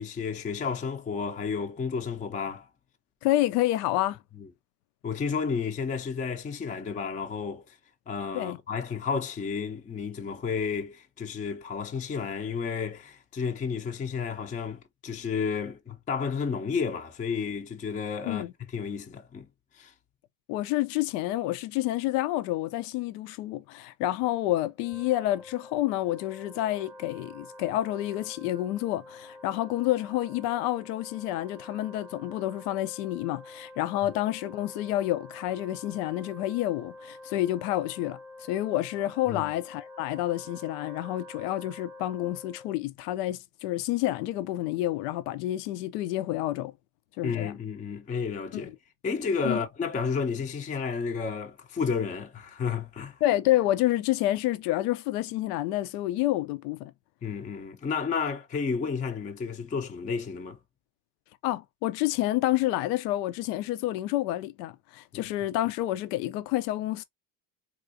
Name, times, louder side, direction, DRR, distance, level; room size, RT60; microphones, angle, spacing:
voice 1, 0.0-2.7 4.4-4.5 5.0-7.8 8.1-19.5 19.7-19.9 39.3-39.5 47.2-48.7 49.0-53.2 57.2-60.6 65.1-65.2, left 5 dB, 20° left, 0.4 m, -32 dB
voice 2, 3.2-4.2 8.3-8.6 18.2-18.5 20.5-38.2 38.5-46.7 47.2-47.5 48.5-48.6 49.4-49.6 53.2-56.9 61.4-67.0, left 15 dB, 80° left, 0.5 m, -29 dB
Wind instrument woodwind instrument, 24.7-42.8, left 1 dB, 10° right, 0.8 m, -47 dB
3.7 x 2.4 x 2.5 m
supercardioid pair, 85°, 46 cm